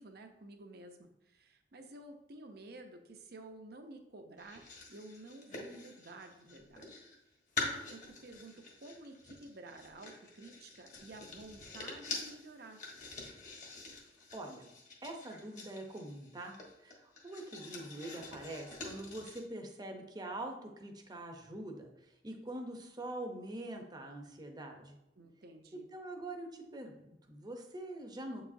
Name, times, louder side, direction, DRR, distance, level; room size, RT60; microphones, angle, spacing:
voice 1, 0.0-6.9 7.6-12.8 25.2-25.9, right 2 dB, 60° right, 5 dB, 0.7 m, -52 dB
sound 1, 4.4-7.2 7.5-19.4, left 3 dB, 45° left, 1.3 m, -46 dB
voice 2, 14.3-14.7 15.0-16.5 16.8-21.9 22.2-25.0 25.9-28.4, right 1 dB, 25° right, 3 dB, 0.7 m, -44 dB
7.7 x 4.9 x 2.7 m, 0.88 s
head